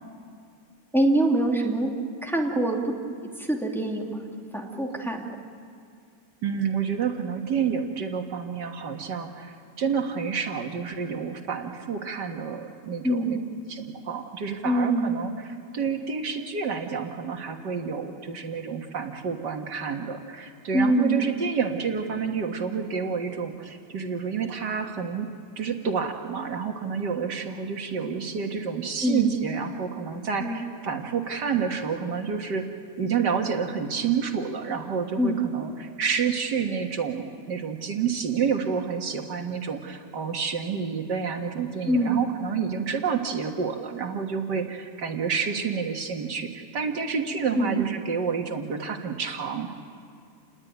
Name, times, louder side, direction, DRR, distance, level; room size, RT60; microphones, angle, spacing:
voice 1, 0.9-1.9 2.2-2.8 3.5-4.2 4.5-5.3 13.0-13.4 14.6-15.1 20.7-21.2 29.0-29.3 30.4-30.6 35.2-35.4 41.9-42.2 47.5-47.8, right 1 dB, ahead, -1 dB, 2.6 m, -24 dB
voice 2, 6.4-13.4 13.7-25.3 25.6-32.6 33.0-49.7, right 6 dB, 75° right, 3 dB, 2.2 m, -29 dB
28.5 x 20.5 x 9.3 m, 2.3 s
omnidirectional pair, 1.9 m